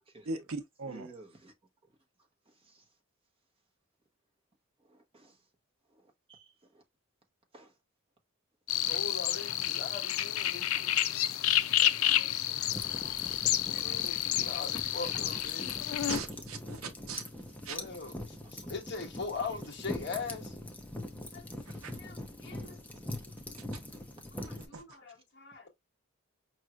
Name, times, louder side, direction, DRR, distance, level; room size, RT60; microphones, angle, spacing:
voice 1, 0.3-1.1 16.1-17.8 21.7-21.9 23.7-23.8 24.7-24.8, right 4 dB, 75° right, 0.7 m, -40 dB
voice 2, 0.8-1.5 2.5-2.9 4.8-5.4 5.9-6.8 7.5-7.7 8.7-8.9 11.2-11.3 13.8-13.9 14.7-14.9 18.4-18.6 24.4-24.6, right 3 dB, 25° right, 0.9 m, -56 dB
sound 1, 8.7-16.2, left 12 dB, 75° left, 0.5 m, -30 dB
voice 3, 8.8-11.0 11.8-15.7 17.7-20.6 21.3-23.3 24.4-25.7, left 4 dB, 50° left, 1.4 m, -42 dB
sound 2, 12.7-24.7, left 1 dB, 5° left, 0.6 m, -42 dB
5.3 x 3.0 x 2.4 m
head